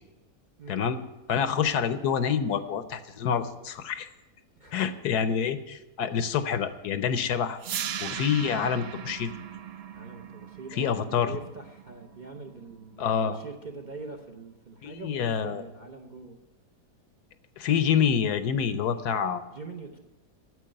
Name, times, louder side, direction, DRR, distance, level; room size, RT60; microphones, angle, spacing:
voice 1, 0.7-1.0 1.3-4.1 4.7-7.6 8.0-9.3 10.7-11.3 13.0-13.4 14.8-15.6 17.6-19.4, left 7 dB, 75° left, 11 dB, 1.2 m, -27 dB
sound 1, 7.6-13.6, right 9 dB, 75° right, 0.5 m, -39 dB
voice 2, 9.9-16.4 19.5-20.0, right 4 dB, 40° right, 3 dB, 0.7 m, -43 dB
9.4 x 7.5 x 8.8 m, 1.0 s
omnidirectional pair, 1.7 m